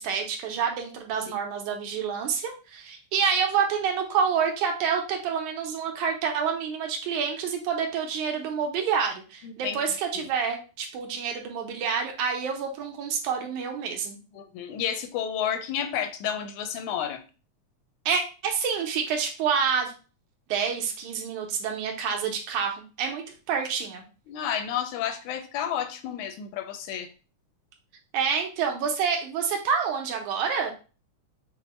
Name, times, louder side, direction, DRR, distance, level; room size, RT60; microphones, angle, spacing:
voice 1, 0.0-14.2 18.1-19.9 20.5-24.0 28.1-30.7, right 6 dB, 75° right, 3 dB, 2.2 m, -28 dB
voice 2, 9.4-9.8 10.2-10.3 14.4-17.2 24.3-27.1, left 9 dB, 80° left, 7 dB, 1.9 m, -31 dB
6.1 x 2.1 x 4.2 m, 0.34 s
omnidirectional pair, 3.5 m